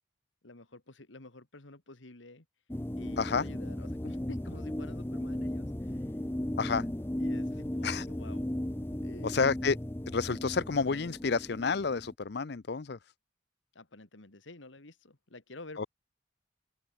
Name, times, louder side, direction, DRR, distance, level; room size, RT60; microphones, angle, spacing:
voice 1, 0.4-2.5 3.0-6.1 7.2-8.5 9.0-9.4 13.7-15.9, left 2 dB, 75° left, 2.2 m, -50 dB
sound 1, 2.7-12.1, left 1 dB, 10° left, 0.6 m, -36 dB
voice 2, 9.2-9.8 10.1-13.0 15.8-15.9, left 4 dB, 55° left, 0.6 m, -30 dB
open air
head